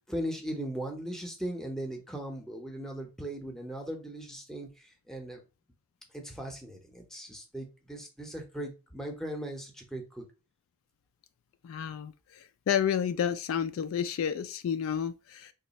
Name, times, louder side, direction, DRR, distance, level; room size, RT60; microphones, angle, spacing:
voice 1, 0.1-5.4 6.1-10.2, right 1 dB, ahead, 0.7 m, -38 dB
voice 2, 11.6-15.5, left 8 dB, 70° left, 0.3 m, -31 dB
3.1 x 2.3 x 4.1 m
head